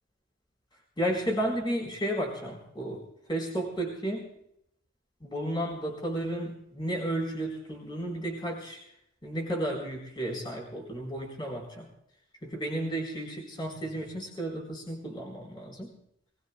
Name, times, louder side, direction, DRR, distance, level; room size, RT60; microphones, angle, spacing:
voice 1, 1.0-3.0 3.3-4.3 5.2-8.8 9.2-11.9 12.4-15.9, right 1 dB, 25° left, -1 dB, 3.9 m, -33 dB
27.5 x 19.5 x 2.2 m, 0.77 s
head